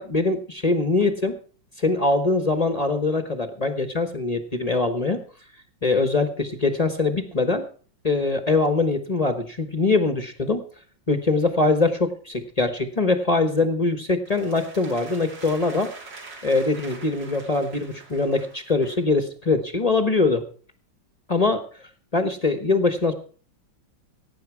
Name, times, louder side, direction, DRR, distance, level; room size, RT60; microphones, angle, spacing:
voice 1, 0.0-1.3 1.8-5.2 5.8-7.6 8.0-10.6 11.1-15.9 16.4-20.4 21.3-21.6 22.1-23.1, left 3 dB, 25° left, 8 dB, 0.8 m, -22 dB
sound 1, 14.3-19.1, right 3 dB, 65° right, 3.3 m, -44 dB
17.5 x 9.0 x 4.7 m, 0.43 s
omnidirectional pair, 2.1 m